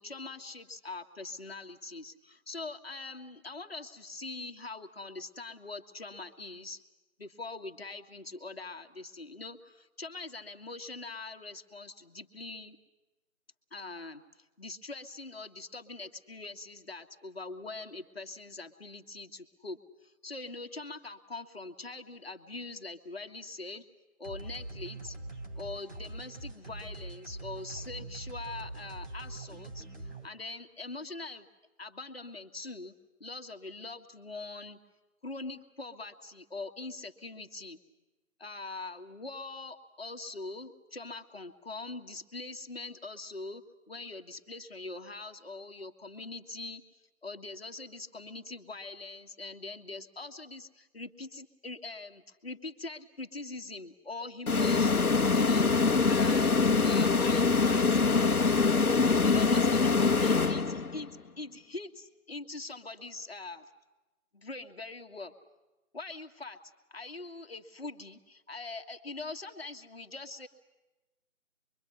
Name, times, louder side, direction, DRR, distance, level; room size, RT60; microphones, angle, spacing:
voice 1, 0.0-6.8 7.2-12.8 13.7-14.2 14.6-23.8 24.2-25.2 25.6-31.5 31.8-32.9 33.2-34.8 35.2-37.8 38.4-46.8 47.2-55.7 56.1-56.6 56.8-58.0 59.2-61.1 61.4-63.7 64.3-65.3 65.9-66.6 66.9-70.5, left 3 dB, 45° left, 6 dB, 1.7 m, -43 dB
sound 1, 24.2-30.3, right 2 dB, 55° right, 3.4 m, -43 dB
sound 2, 54.5-61.1, left 4 dB, 80° left, 1.1 m, -24 dB
25.0 x 23.5 x 9.6 m, 1.1 s
figure-of-eight pair, 165°, 43 cm